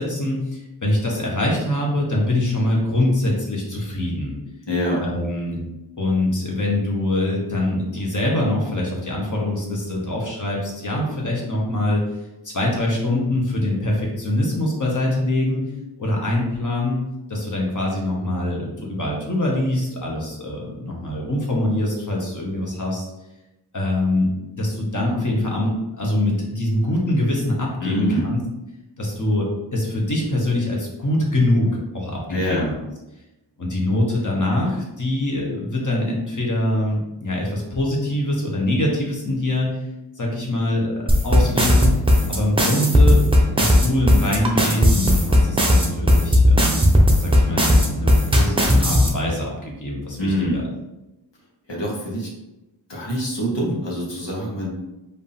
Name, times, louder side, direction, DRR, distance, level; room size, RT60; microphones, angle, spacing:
voice 1, 0.0-4.4 5.0-5.6 6.0-12.0 12.4-15.6 16.0-23.0 23.7-28.4 29.0-32.7 33.6-39.8 40.2-42.0 42.3-43.2 43.6-50.6, left 1 dB, 40° left, -2 dB, 1.4 m, -24 dB
voice 2, 4.7-5.1 27.8-28.3 32.3-32.7 50.2-50.6 51.7-52.3 52.9-54.7, equal, 65° left, -4 dB, 1.5 m, -24 dB
sound 1, 41.1-49.1, left 1 dB, 10° right, 0.8 m, -15 dB
4.9 x 2.8 x 3.5 m, 0.97 s
wide cardioid pair, 70°, 45 cm